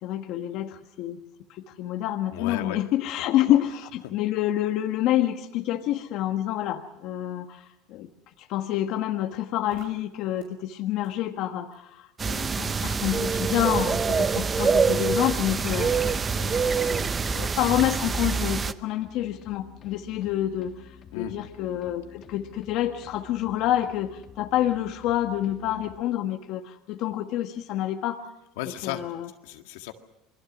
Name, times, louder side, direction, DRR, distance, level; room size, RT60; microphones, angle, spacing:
voice 1, 0.0-1.2 1.5-8.1 8.4-16.1 16.4-28.3 28.8-29.3, left 12 dB, 60° left, 5 dB, 1.4 m, -28 dB
voice 2, 2.3-2.8 3.4-3.6 4.0-4.1 21.1-21.3 28.6-29.1 29.4-29.9, left 12 dB, 85° left, 5 dB, 1.8 m, -34 dB
sound 1, 9.7-9.9 10.4-10.5 11.0-11.1 11.7-11.8 12.4-12.6 13.0-13.1 13.7-13.9 14.4-14.5 15.0-15.1, right 8 dB, 75° right, 5.8 m, -51 dB
sound 2, 12.2-18.7, right 5 dB, 25° right, 0.8 m, -25 dB
sound 3, 19.0-26.0, left 7 dB, 40° left, 1.8 m, -50 dB
28.0 x 21.5 x 6.1 m, 0.91 s
supercardioid pair, 115°, 0 cm